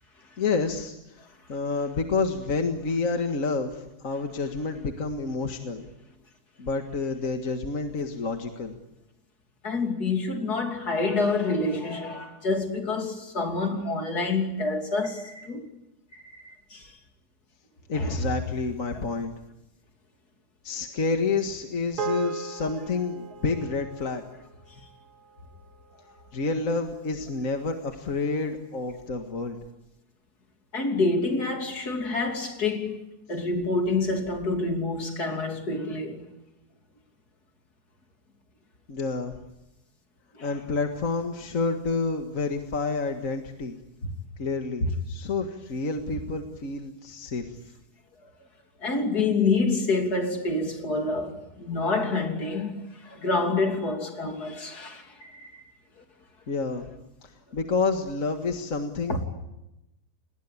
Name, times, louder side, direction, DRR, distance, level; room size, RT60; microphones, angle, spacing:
voice 1, 0.4-5.9 6.6-8.8 17.9-19.3 20.6-24.2 26.3-29.6 38.9-39.3 40.4-43.8 44.4-47.5 56.5-56.9 57.2-59.2, left 4 dB, 55° left, 2.2 m, -29 dB
voice 2, 9.6-15.7 16.1-16.8 18.0-18.1 30.7-33.0 33.3-36.2 40.4-40.5 44.8-44.9 48.8-55.6 59.1-59.2, left 3 dB, 70° left, 3.6 m, -27 dB
sound 1, 22.0-26.5, right 4 dB, 75° right, 1.9 m, -38 dB
29.0 x 21.0 x 8.6 m
omnidirectional pair, 1.7 m